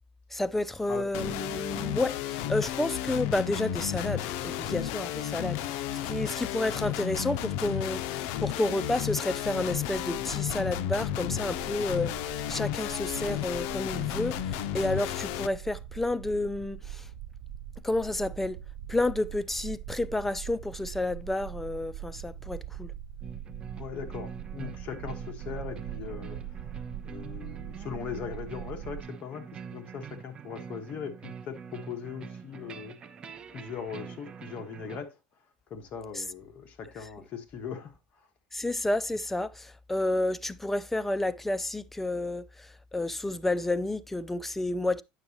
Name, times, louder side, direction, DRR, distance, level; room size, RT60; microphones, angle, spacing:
voice 1, 0.3-12.1 12.5-17.1 17.8-18.6 18.9-22.9 36.2-36.3 38.5-45.0, left 2 dB, 5° left, 0.4 m, -30 dB
sound 1, 1.1-15.5, left 12 dB, 75° left, 0.5 m, -33 dB
sound 2, 9.4-29.0, right 11 dB, 80° right, 0.7 m, -43 dB
sound 3, 23.2-35.0, right 6 dB, 30° right, 0.7 m, -44 dB
voice 2, 23.8-26.4 27.0-33.0 33.5-35.1 35.7-38.3, left 7 dB, 45° left, 1.4 m, -40 dB
9.0 x 6.1 x 2.9 m
cardioid pair, 140°, 3 cm